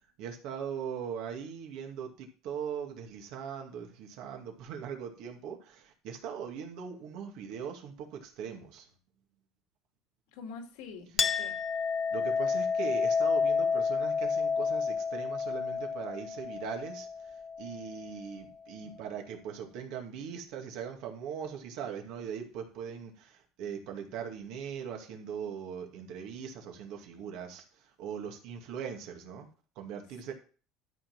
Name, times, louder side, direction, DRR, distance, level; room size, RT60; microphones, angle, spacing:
voice 1, 0.2-8.9 12.1-17.1 17.6-27.6 28.0-29.5 29.8-30.3, right 7 dB, 55° right, 3 dB, 2.3 m, -40 dB
voice 2, 10.3-11.6 18.8-19.0, left 5 dB, 80° left, 4 dB, 2.3 m, -46 dB
Chink clink, 11.2-18.2, left 5 dB, 20° left, 0.4 m, -30 dB
12.5 x 4.4 x 5.9 m, 0.39 s
cardioid pair, 180°, 0 cm